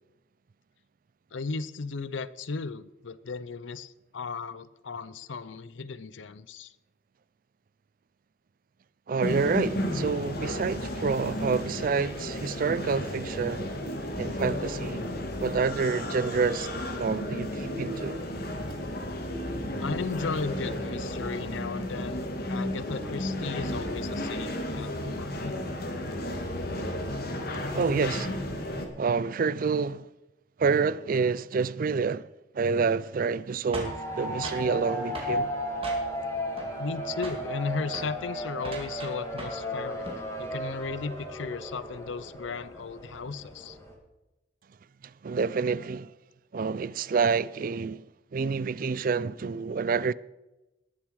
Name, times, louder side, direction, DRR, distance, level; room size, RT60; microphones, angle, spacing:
voice 1, 1.3-6.7 19.8-25.6 36.8-40.1 40.4-43.8, left 4 dB, 85° left, 0.6 m, -35 dB
voice 2, 9.1-13.7 14.2-15.1 15.4-16.7 17.0-18.2 27.5-28.3 29.0-30.1 30.6-32.3 32.5-35.5 45.2-46.1 46.5-48.0 48.3-50.1, right 5 dB, 50° right, 0.4 m, -28 dB
sound 1, 9.2-28.9, left 1 dB, 55° left, 1.8 m, -33 dB
sound 2, 33.7-34.7 35.1-35.4 35.8-36.3 36.6-37.0 37.2-37.5 37.9-38.1 38.6-39.7 39.9-40.3, right 2 dB, 30° right, 2.5 m, -40 dB
sound 3, 33.8-43.9, equal, 15° left, 2.3 m, -35 dB
19.5 x 7.3 x 4.7 m
head